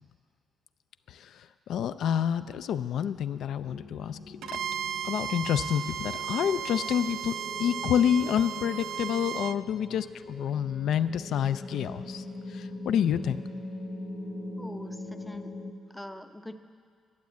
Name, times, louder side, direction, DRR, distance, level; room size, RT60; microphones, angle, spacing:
voice 1, 1.1-4.6 5.0-13.4, left 9 dB, 70° left, 12 dB, 0.3 m, -28 dB
sound 1, 3.7-15.7, left 2 dB, 45° left, 1.2 m, -42 dB
Bowed string instrument, 4.4-9.6, right 9 dB, 75° right, 0.3 m, -35 dB
voice 2, 14.6-15.5 15.9-16.6, left 1 dB, 5° left, 8 dB, 0.5 m, -43 dB
11.5 x 7.4 x 9.4 m, 2.2 s
cardioid pair, 140°, 0 cm